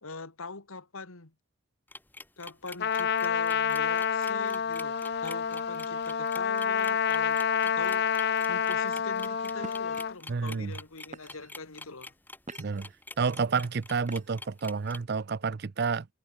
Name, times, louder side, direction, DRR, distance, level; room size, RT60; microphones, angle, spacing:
voice 1, 0.0-1.3 2.4-7.4 7.6-8.1 8.5-12.1, left 3 dB, 80° left, 2.1 m, -43 dB
sound 1, 1.9-15.0, left 2 dB, 10° left, 5.6 m, -46 dB
Trumpet, 2.8-10.1, left 7 dB, 50° left, 0.5 m, -28 dB
sound 2, 8.7-9.0 9.6-10.0 10.7-10.8 11.1-11.6 12.1-12.9 14.0-14.5, right 2 dB, 35° right, 1.4 m, -45 dB
voice 2, 10.3-10.7 12.6-12.9 13.2-16.1, right 5 dB, 50° right, 0.5 m, -30 dB
head